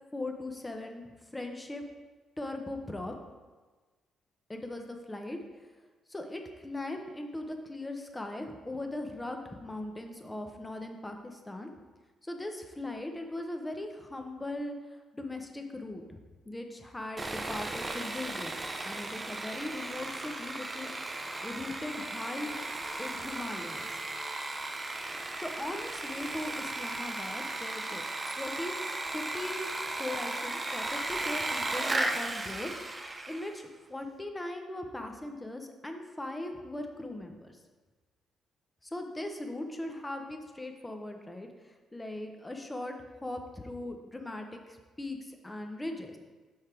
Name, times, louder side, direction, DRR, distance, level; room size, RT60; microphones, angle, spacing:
voice 1, 0.1-1.8 2.4-3.2 4.5-5.7 6.1-11.7 12.2-16.2 16.4-18.5 18.8-22.6 23.0-23.9 25.4-28.1 28.4-28.9 29.1-29.7 30.0-37.6 38.8-42.9 43.2-46.2, left 1 dB, 15° left, 4 dB, 0.8 m, -39 dB
Sawing, 17.2-33.6, right 2 dB, 20° right, 0.5 m, -36 dB
5.6 x 4.9 x 4.4 m, 1.3 s
cardioid pair, 90°, 0 cm